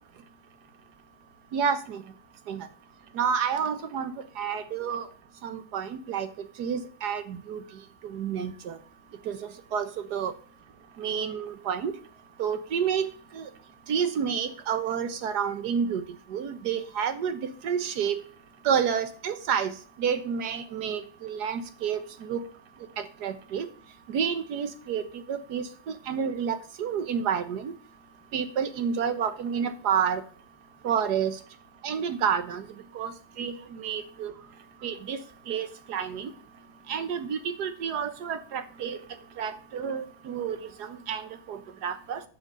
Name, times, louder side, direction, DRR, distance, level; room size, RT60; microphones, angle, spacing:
voice 1, 1.5-2.0 2.5-2.7 3.1-4.1 4.4-5.1 5.4-6.3 6.6-7.6 8.0-8.8 9.2-9.4 9.7-10.3 11.0-11.9 12.4-13.1 13.3-13.5 13.9-16.0 16.3-18.2 18.6-19.7 20.0-22.4 23.0-23.7 24.1-27.7 28.3-30.2 30.8-31.4 31.8-32.7 32.9-34.3 34.8-35.2 35.5-36.3 36.9-39.0 39.4-42.2, right 7 dB, 55° right, 10 dB, 1.4 m, -29 dB
7.4 x 6.4 x 7.5 m, 0.42 s
omnidirectional pair, 2.4 m